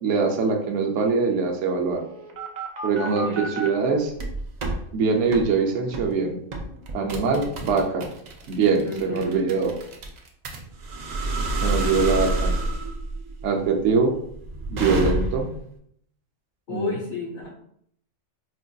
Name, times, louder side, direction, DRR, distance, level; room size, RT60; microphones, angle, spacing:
voice 1, 0.0-2.0 2.8-3.3 3.6-4.1 4.9-6.4 6.9-8.1 8.5-9.7 11.6-12.5 13.4-14.2 14.7-15.5 16.7-16.9, right 4 dB, 70° right, 2 dB, 0.9 m, -23 dB
sound 1, 1.9-3.7 4.2-4.8 5.3-5.5 5.9-6.1 6.5-15.6, right 2 dB, 55° right, 0.5 m, -29 dB
voice 2, 3.0-3.6 8.8-9.4 16.7-17.5, left 4 dB, 70° left, -6 dB, 1.3 m, -33 dB
4.3 x 2.5 x 2.2 m, 0.68 s
omnidirectional pair, 1.3 m